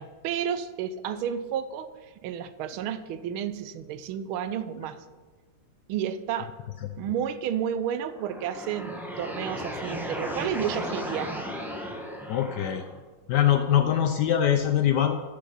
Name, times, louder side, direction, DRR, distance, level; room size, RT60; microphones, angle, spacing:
voice 1, 0.0-1.9 2.2-5.0 5.9-6.5 7.0-11.5, right 9 dB, 85° right, 13 dB, 1.5 m, -31 dB
sound 1, 8.0-13.0, equal, ahead, 0.8 m, -35 dB
voice 2, 12.3-12.9 13.3-15.2, left 10 dB, 70° left, 8 dB, 1.0 m, -23 dB
11.5 x 6.5 x 5.6 m, 1.3 s
omnidirectional pair, 2.3 m